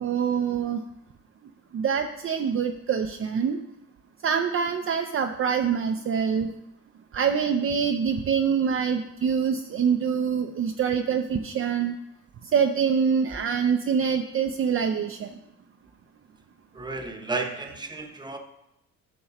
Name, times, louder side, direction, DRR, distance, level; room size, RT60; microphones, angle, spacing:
voice 1, 0.0-0.8 1.7-3.6 4.2-6.5 7.1-11.9 12.5-15.3, right 7 dB, 45° right, 5 dB, 0.6 m, -25 dB
voice 2, 16.7-18.4, right 3 dB, 15° right, 5 dB, 1.0 m, -33 dB
10.5 x 6.2 x 3.0 m, 0.85 s
cardioid pair, 90°, 30 cm